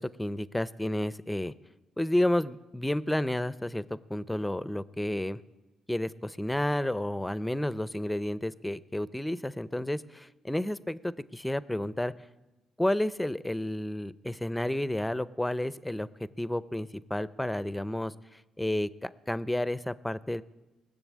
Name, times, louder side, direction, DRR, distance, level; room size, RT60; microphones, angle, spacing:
voice 1, 0.0-1.5 2.0-5.4 5.9-12.1 12.8-16.1 16.4-20.4, left 1 dB, 5° left, 17 dB, 0.5 m, -31 dB
19.5 x 6.8 x 8.4 m, 1.1 s
cardioid pair, 90°, 0 cm